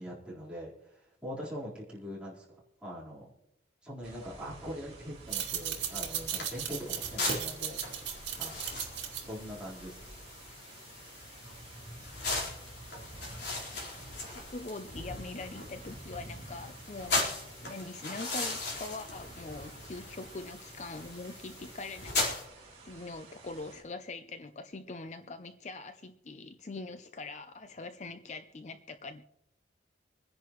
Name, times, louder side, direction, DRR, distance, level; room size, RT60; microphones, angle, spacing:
voice 1, 0.0-2.5 2.8-3.3 3.8-8.6 9.2-10.0, equal, 5° right, -7 dB, 4.2 m, -42 dB
sound 1, 4.0-23.8, right 2 dB, 35° right, 3.0 m, -51 dB
sound 2, 5.2-10.3, right 9 dB, 70° right, 2.2 m, -37 dB
sound 3, 5.3-22.4, left 2 dB, 65° left, 4.5 m, -39 dB
voice 2, 14.4-17.2 17.6-22.3 22.8-29.2, left 3 dB, 40° left, 9 dB, 0.5 m, -43 dB
25.5 x 10.5 x 3.1 m, 0.84 s
head